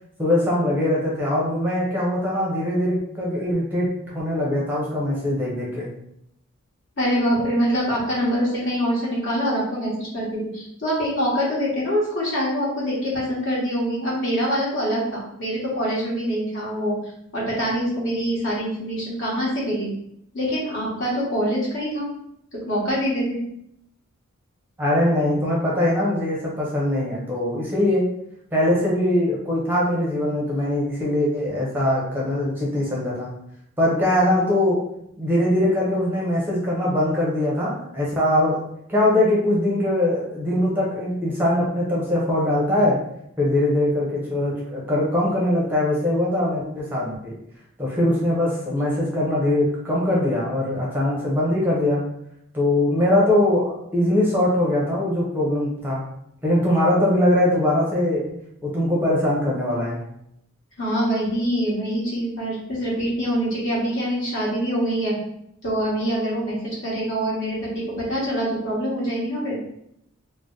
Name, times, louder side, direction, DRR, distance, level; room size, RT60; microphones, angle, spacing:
voice 1, 0.2-5.9 24.8-28.1 28.5-33.3 33.8-34.8 35.2-38.6 38.9-43.0 43.4-47.3 47.8-52.0 52.5-56.0 56.4-58.2 58.6-60.0, left 1 dB, 10° right, -5 dB, 0.6 m, -22 dB
voice 2, 7.0-17.0 17.3-19.9 20.3-22.1 22.5-23.4 60.8-65.2 65.6-69.6, equal, 55° left, -6 dB, 1.1 m, -24 dB
2.5 x 2.0 x 3.7 m, 0.76 s
head